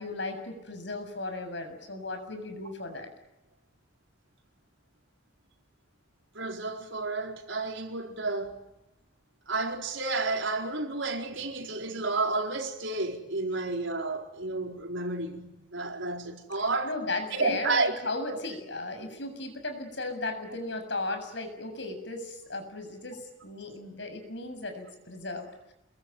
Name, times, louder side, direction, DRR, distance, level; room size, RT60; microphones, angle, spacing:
voice 1, 0.0-3.1 16.8-25.7, left 2 dB, 70° left, 7.3 m, -36 dB
voice 2, 6.3-8.6 9.5-16.9 17.3-17.9 18.3-18.4, right 3 dB, 85° right, 4.8 m, -31 dB
28.0 x 22.5 x 9.3 m
head